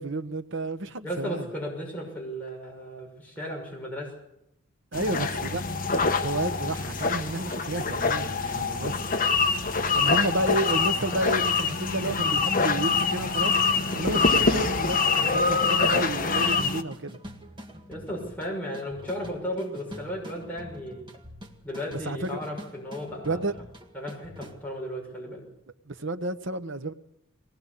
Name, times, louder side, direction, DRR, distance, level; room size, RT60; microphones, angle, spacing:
voice 1, 0.0-1.4 4.9-5.6 6.2-9.1 9.9-13.6 13.9-17.2 22.1-22.4 23.3-23.5 25.9-26.9, right 2 dB, 55° right, 1.1 m, -31 dB
voice 2, 1.0-4.1 17.9-21.1 21.6-23.4 23.9-25.4, equal, 5° left, 6.3 m, -35 dB
sound 1, 4.9-16.8, left 4 dB, 35° left, 1.2 m, -25 dB
sound 2, 12.7-24.5, equal, 20° right, 2.0 m, -45 dB
22.0 x 19.0 x 8.4 m
head